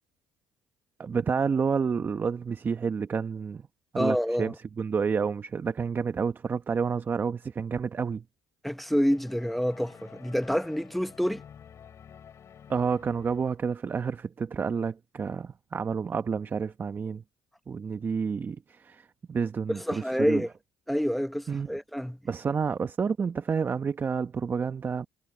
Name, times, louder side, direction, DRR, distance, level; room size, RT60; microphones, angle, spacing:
voice 1, 1.0-3.7 3.9-8.2 12.7-17.2 17.7-20.4 21.5-21.8 22.2-25.1, right 6 dB, 35° right, 1.0 m, -29 dB
voice 2, 4.0-4.5 8.6-11.4 19.7-20.5 20.9-22.2, equal, ahead, 1.1 m, -27 dB
sound 1, 9.1-13.7, left 8 dB, 50° left, 4.4 m, -51 dB
supercardioid pair, 85°, 6 cm